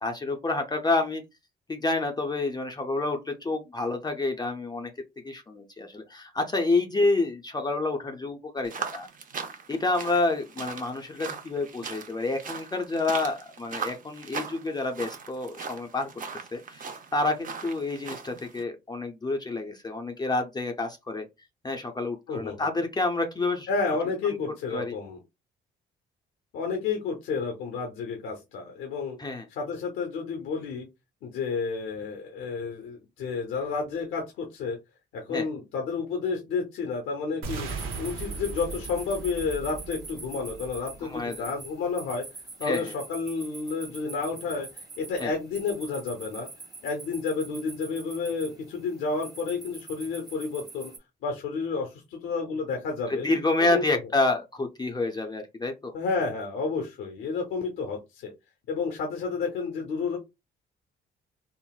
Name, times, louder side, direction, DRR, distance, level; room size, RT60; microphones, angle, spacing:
voice 1, 0.0-1.2 1.7-4.9 5.2-9.1 9.7-16.2 16.5-21.3 21.6-23.7 24.7-24.9 29.2-29.5 35.3-35.5 41.0-41.5 42.6-42.9 45.2-45.3 53.1-55.9, left 2 dB, 20° left, 0.5 m, -28 dB
sound 1, 8.6-18.6, right 5 dB, 40° right, 0.6 m, -39 dB
voice 2, 22.3-22.7 23.7-25.2 26.5-29.2 29.5-30.9 31.2-34.8 35.1-37.7 38.0-42.3 42.6-46.5 46.8-50.9 51.2-53.3 53.6-54.0 55.9-58.3 58.7-60.2, left 4 dB, 85° left, 0.7 m, -31 dB
sound 2, 37.4-41.4, right 5 dB, 85° right, 0.8 m, -38 dB
sound 3, 37.7-51.0, right 3 dB, 20° right, 1.2 m, -44 dB
3.7 x 2.0 x 2.3 m
cardioid pair, 90°, 20 cm